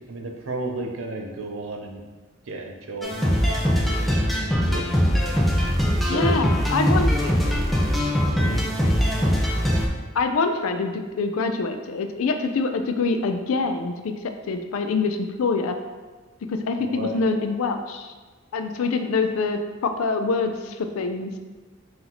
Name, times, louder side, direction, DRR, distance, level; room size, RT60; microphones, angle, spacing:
voice 1, 0.1-2.0 2.5-3.2 3.8-4.9 6.0-6.6 6.9-8.7 16.9-17.2, right 2 dB, 65° right, 2 dB, 0.6 m, -34 dB
sound 1, 3.0-9.9, equal, ahead, 0.5 m, -22 dB
voice 2, 6.1-7.1 10.1-15.8 16.5-18.1 18.5-21.3, left 4 dB, 70° left, 7 dB, 0.4 m, -25 dB
5.5 x 2.7 x 2.9 m, 1.3 s
head